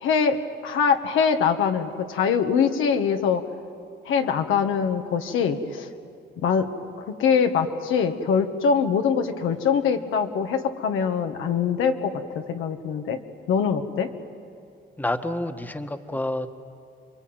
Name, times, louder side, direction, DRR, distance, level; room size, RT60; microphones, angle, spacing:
voice 1, 0.0-3.4 4.1-5.9 6.4-6.7 7.2-13.2 13.5-14.1, left 6 dB, 85° left, 5 dB, 1.7 m, -23 dB
voice 2, 15.0-16.5, left 1 dB, 10° left, 7 dB, 1.4 m, -28 dB
28.0 x 23.0 x 9.1 m, 2.5 s
cardioid pair, 90°, 20 cm